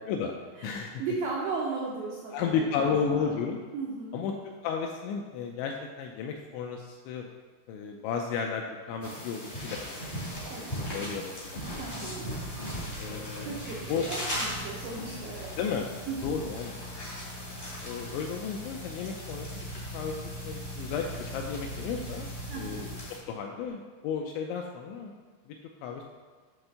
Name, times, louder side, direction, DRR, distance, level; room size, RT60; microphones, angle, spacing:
voice 1, 0.6-3.4 3.7-4.2 10.5-11.0 11.8-12.3 13.4-15.5 16.1-16.4 22.5-22.9, right 4 dB, 85° right, -4 dB, 2.1 m, -36 dB
voice 2, 2.3-3.6 4.1-4.3 4.6-7.3 7.7-10.2 10.6-11.6 13.0-13.6 13.9-14.1 15.6-15.9 16.2-16.7 17.8-19.7 19.9-20.2 20.4-22.3 22.5-22.8 23.1-25.1 25.8-26.0, left 6 dB, 85° left, 2 dB, 2.6 m, -33 dB
sound 1, 9.0-23.2, equal, 50° left, 0.5 m, -39 dB
Car / Idling, 11.3-23.7, equal, 65° left, 1.2 m, -42 dB
8.9 x 3.4 x 6.6 m, 1.4 s
omnidirectional pair, 5.6 m